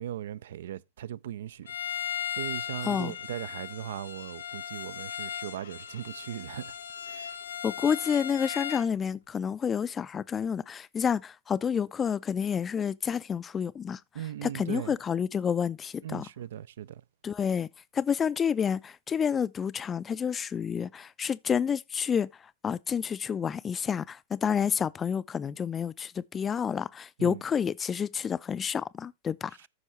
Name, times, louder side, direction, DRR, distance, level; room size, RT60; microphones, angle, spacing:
voice 1, 0.0-1.7 2.0-2.1 2.4-6.7 7.1-7.3 14.1-14.9 16.0-17.0 27.2-27.4, right 11 dB, 60° right, 0.4 m, -38 dB
Bowed string instrument, 1.7-8.9, left 9 dB, 65° left, 0.8 m, -37 dB
voice 2, 2.8-3.1 7.6-14.0 14.4-16.3 17.2-17.7 17.9-22.3 22.6-29.7, left 7 dB, 20° left, 0.4 m, -29 dB
13.5 x 6.2 x 3.2 m
figure-of-eight pair, 90°, 0 cm